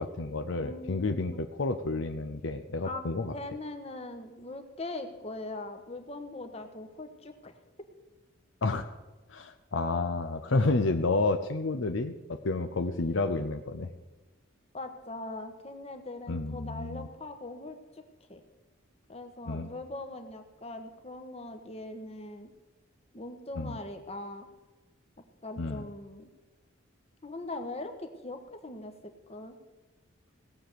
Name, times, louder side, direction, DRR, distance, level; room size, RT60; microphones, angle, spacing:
voice 1, 0.0-3.3 8.6-8.9 9.3-13.9 16.3-17.1 19.5-19.7 23.6-23.8 25.6-25.8, left 3 dB, 65° left, 8 dB, 0.7 m, -30 dB
voice 2, 0.6-1.4 2.8-7.5 14.7-18.0 18.3-18.4 19.1-22.5 23.1-24.5 25.4-26.3 27.2-28.9 29.3-29.6, left 2 dB, 30° left, 6 dB, 1.3 m, -41 dB
17.5 x 7.8 x 6.9 m, 1.2 s
head